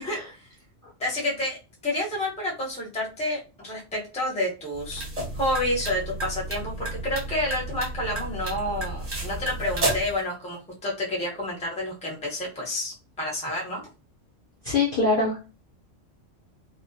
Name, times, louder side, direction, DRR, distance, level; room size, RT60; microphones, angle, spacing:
voice 1, 0.1-0.5 1.0-1.6 1.8-5.0 5.3-13.8, left 1 dB, 10° left, -3 dB, 0.5 m, -29 dB
sound 1, 4.7-10.2, right 2 dB, 35° right, 0.8 m, -32 dB
voice 2, 14.6-15.4, left 3 dB, 60° left, -2 dB, 0.6 m, -24 dB
2.3 x 2.1 x 2.5 m, 0.33 s
omnidirectional pair, 1.3 m